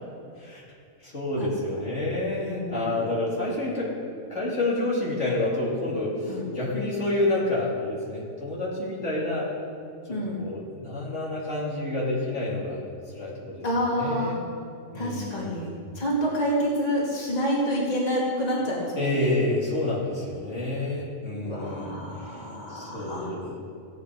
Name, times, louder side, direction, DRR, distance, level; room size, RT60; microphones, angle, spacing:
voice 1, 1.0-9.5 10.1-12.8 13.1-13.6 13.9-14.4 14.9-15.7 19.0-22.0 22.7-23.5, left 2 dB, 65° left, -5 dB, 2.8 m, -28 dB
voice 2, 2.4-3.0 6.2-6.5 10.1-10.5 13.6-14.3 14.9-19.3 21.4-23.3, equal, 30° left, -4 dB, 2.3 m, -28 dB
15.5 x 9.3 x 4.7 m, 2.4 s
omnidirectional pair, 1.3 m